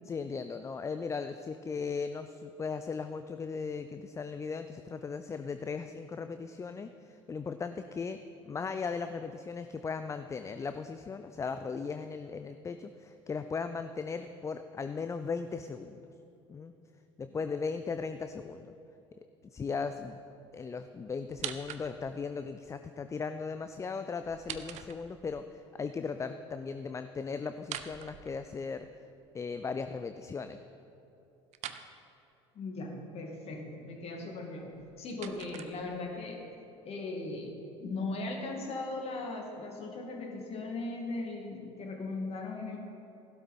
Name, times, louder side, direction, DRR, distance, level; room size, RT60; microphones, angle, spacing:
voice 1, 0.0-8.2 8.5-16.0 16.5-16.7 17.2-18.7 19.4-20.1 20.5-28.9 29.3-30.6, left 5 dB, 20° left, 9 dB, 0.5 m, -37 dB
sound 1, 21.3-22.2 24.2-25.4 27.6-28.9 31.5-31.9 34.6-36.2, right 11 dB, 45° right, 0.7 m, -44 dB
voice 2, 32.5-36.5 36.8-37.5 37.8-42.8, left 2 dB, 40° left, 2 dB, 2.4 m, -38 dB
15.5 x 12.5 x 4.3 m, 2.9 s
figure-of-eight pair, 65°, 16 cm